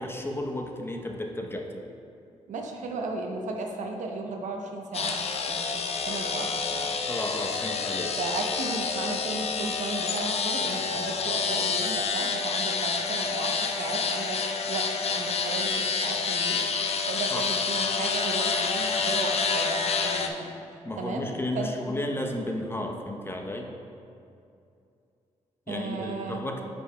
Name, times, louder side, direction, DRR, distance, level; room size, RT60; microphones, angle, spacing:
voice 1, 0.0-1.7 7.1-8.1 17.3-17.4 20.8-23.7 25.7-26.6, left 1 dB, 20° left, 2 dB, 0.8 m, -33 dB
voice 2, 2.5-6.9 8.2-14.4 14.7-16.6 17.1-20.5 21.0-21.3 21.5-21.8 25.7-26.4, right 3 dB, 70° right, 2 dB, 0.7 m, -34 dB
sound 1, 4.9-20.3, left 5 dB, 55° left, 0.5 m, -28 dB
9.5 x 5.3 x 2.2 m, 2.6 s
supercardioid pair, 60°, 13 cm